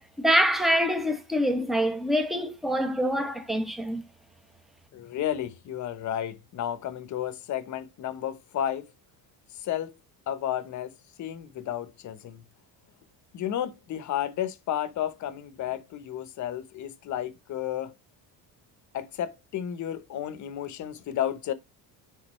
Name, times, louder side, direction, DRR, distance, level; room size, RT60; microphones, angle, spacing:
voice 1, 0.0-4.0, equal, ahead, 1.1 m, -25 dB
voice 2, 4.9-8.9 9.6-9.9 10.3-10.9 11.2-12.4 13.3-17.9 18.9-21.5, left 10 dB, 45° left, 1.0 m, -32 dB
9.8 x 4.0 x 3.1 m
cardioid pair, 145°, 40 cm